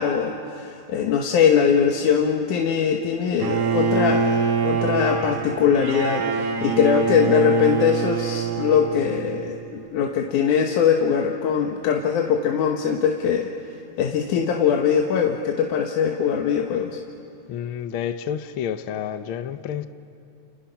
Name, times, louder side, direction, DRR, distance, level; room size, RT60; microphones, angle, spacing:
voice 1, 0.0-13.5 14.0-17.0, left 7 dB, 85° left, 2.7 m, -21 dB
Bowed string instrument, 3.4-9.5, right 5 dB, 55° right, 2.9 m, -24 dB
voice 2, 17.5-19.9, left 9 dB, 70° left, 1.2 m, -29 dB
30.0 x 29.0 x 5.8 m
omnidirectional pair, 3.4 m